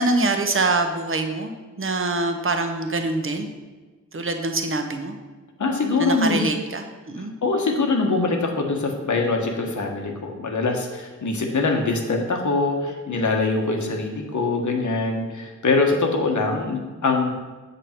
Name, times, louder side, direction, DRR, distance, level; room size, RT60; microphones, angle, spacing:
voice 1, 0.0-3.5 4.1-5.2 6.0-7.3, right 2 dB, 45° right, 5 dB, 1.0 m, -24 dB
voice 2, 5.6-6.5 7.2-17.3, left 3 dB, 80° left, 2 dB, 1.3 m, -23 dB
8.1 x 6.9 x 4.5 m, 1.3 s
wide cardioid pair, 100°, 30 cm